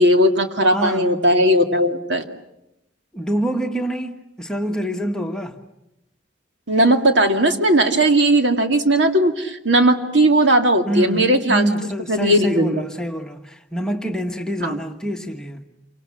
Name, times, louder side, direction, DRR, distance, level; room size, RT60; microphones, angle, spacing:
voice 1, 0.0-2.2 6.7-11.6 12.1-12.7 14.6-14.8, right 1 dB, 70° right, 2.2 m, -17 dB
voice 2, 0.7-1.1 3.1-5.5 10.9-15.6, equal, 5° left, 1.4 m, -26 dB
28.5 x 25.0 x 7.3 m
head